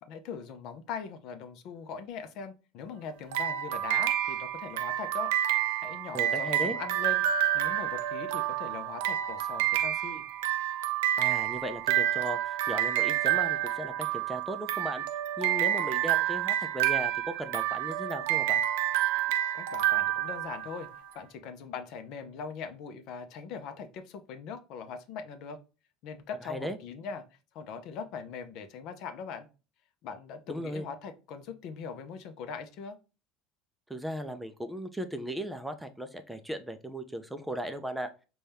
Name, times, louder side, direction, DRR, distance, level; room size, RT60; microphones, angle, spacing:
voice 1, 0.0-5.3 5.8-7.2 7.5-10.2 19.5-20.9 21.1-25.6 26.0-27.2 27.5-29.5 30.0-33.0, left 6 dB, 65° left, 8 dB, 0.5 m, -41 dB
sound 1, 3.3-21.0, right 12 dB, 85° right, 0.3 m, -29 dB
voice 2, 6.1-6.8 11.2-15.0 15.4-18.6 26.4-26.8 30.5-30.9 33.9-38.1, equal, 5° right, 8 dB, 0.4 m, -37 dB
4.1 x 2.3 x 3.3 m, 0.32 s
supercardioid pair, 105°, 0 cm